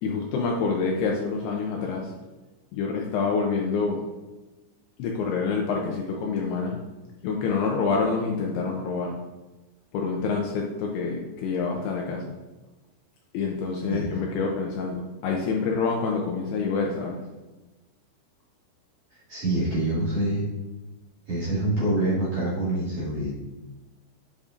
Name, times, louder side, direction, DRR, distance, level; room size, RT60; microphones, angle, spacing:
voice 1, 0.0-2.1 2.7-4.0 5.0-6.8 7.2-9.1 9.9-12.2 13.3-17.2, left 4 dB, 80° left, 0 dB, 2.4 m, -27 dB
voice 2, 19.1-20.4 21.3-23.3, right 1 dB, 45° right, -10 dB, 2.6 m, -26 dB
8.5 x 5.1 x 2.5 m, 1.1 s
omnidirectional pair, 5.1 m